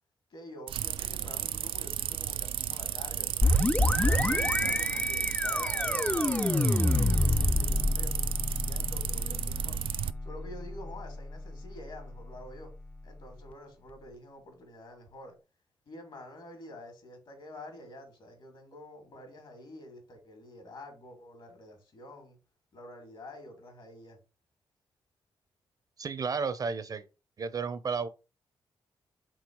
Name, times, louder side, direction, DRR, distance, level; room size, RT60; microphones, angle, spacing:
voice 1, 0.3-3.7 4.0-9.8 10.2-12.7 13.0-15.4 15.9-22.4 22.7-24.2, left 1 dB, 65° left, 2.5 m, -48 dB
sound 1, 0.7-10.1, right 10 dB, 90° right, 0.4 m, -33 dB
sound 2, 3.4-13.0, left 2 dB, 15° left, 0.4 m, -29 dB
voice 2, 26.0-27.0 27.4-28.1, right 5 dB, 45° right, 0.6 m, -32 dB
4.6 x 3.9 x 5.2 m
wide cardioid pair, 120°, 9 cm